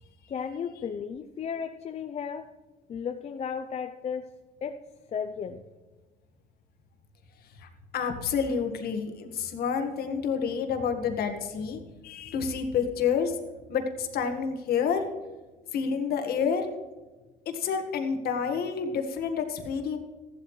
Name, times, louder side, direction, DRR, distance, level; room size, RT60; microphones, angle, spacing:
voice 1, 0.3-2.5 2.9-4.3 4.6-4.8 5.1-5.6, left 7 dB, 40° left, 6 dB, 0.6 m, -34 dB
voice 2, 7.9-13.4 13.7-15.0 15.7-16.7 17.5-20.0, left 6 dB, 65° left, 6 dB, 1.7 m, -29 dB
14.5 x 11.5 x 3.2 m, 1.2 s
cardioid pair, 110°, 17 cm